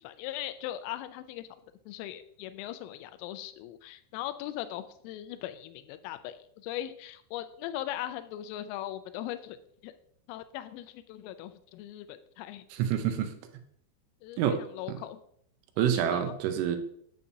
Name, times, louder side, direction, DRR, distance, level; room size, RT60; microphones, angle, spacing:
voice 1, 0.0-1.5 1.9-9.6 9.8-9.9 10.3-12.6 14.2-15.2 15.8-16.2, left 13 dB, 90° left, 11 dB, 3.2 m, -39 dB
voice 2, 12.7-13.3 14.4-14.6 14.9-15.0 15.8-16.8, right 9 dB, 80° right, 7 dB, 3.1 m, -27 dB
8.5 x 8.4 x 2.7 m, 0.68 s
omnidirectional pair, 5.8 m